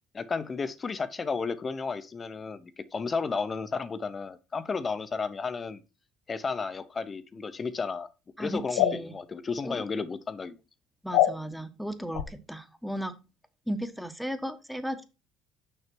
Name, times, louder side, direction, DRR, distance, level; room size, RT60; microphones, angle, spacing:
voice 1, 0.1-5.8 6.3-8.1 8.4-10.6, left 4 dB, 35° left, 0.9 m, -33 dB
voice 2, 8.4-9.1 9.6-9.8 11.0-13.1 13.7-15.0, equal, ahead, 1.3 m, -35 dB
sound 1, 8.7-9.0 11.1-11.4 12.1-12.3, left 13 dB, 85° left, 0.7 m, -23 dB
6.7 x 5.8 x 4.5 m
supercardioid pair, 75°, 0 cm